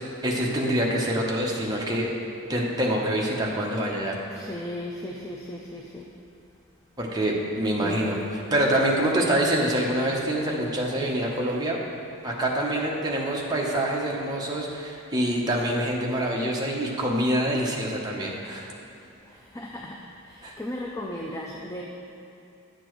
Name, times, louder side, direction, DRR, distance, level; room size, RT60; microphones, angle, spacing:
voice 1, 0.2-2.1 2.5-4.2 7.0-8.2 8.5-11.8 12.2-18.7 20.4-20.5, right 1 dB, 20° right, -2 dB, 0.8 m, -25 dB
voice 2, 4.3-6.1 7.8-8.2 19.2-21.8, left 1 dB, 15° left, -1 dB, 0.4 m, -36 dB
9.8 x 6.8 x 3.1 m, 2.9 s
head